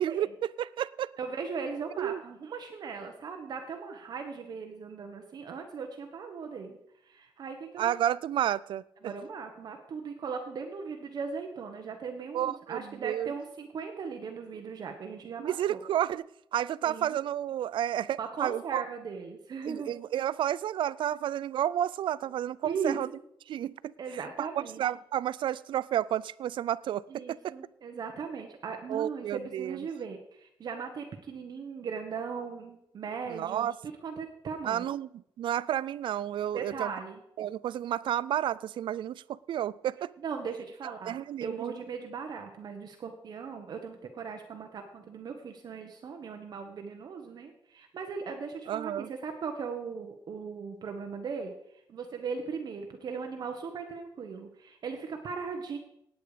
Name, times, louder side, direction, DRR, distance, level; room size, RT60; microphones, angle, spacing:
voice 1, 0.0-1.1 2.0-2.2 7.8-9.1 12.3-13.3 15.4-16.3 16.5-18.8 19.7-23.1 23.5-23.9 24.4-27.5 28.9-29.8 33.3-33.7 34.7-35.1 35.4-36.9 37.4-40.1 41.0-41.7 48.7-49.1, right 11 dB, 70° right, 21 dB, 0.4 m, -31 dB
voice 2, 1.2-6.8 7.0-7.9 9.0-15.8 16.8-17.2 18.2-19.9 22.6-23.2 24.0-24.8 27.1-33.7 34.0-34.8 36.5-37.2 40.2-51.5 51.9-55.8, right 5 dB, 50° right, 4 dB, 1.4 m, -38 dB
18.0 x 9.0 x 5.1 m, 0.76 s
wide cardioid pair, 170°, 9 cm